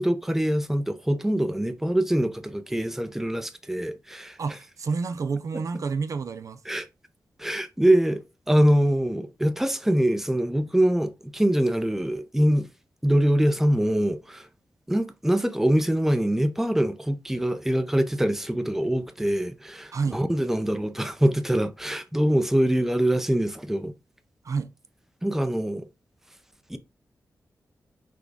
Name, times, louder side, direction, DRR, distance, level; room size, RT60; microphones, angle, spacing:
voice 1, 0.0-4.4 6.7-6.8 7.4-12.7 13.0-14.5 14.9-23.9 25.2-25.9 26.7-26.8, right 1 dB, 5° right, 0.6 m, -24 dB
voice 2, 4.4-6.6 19.9-20.2 24.4-24.7, right 4 dB, 60° right, 0.4 m, -29 dB
6.0 x 2.3 x 3.4 m
cardioid pair, 70°, 6 cm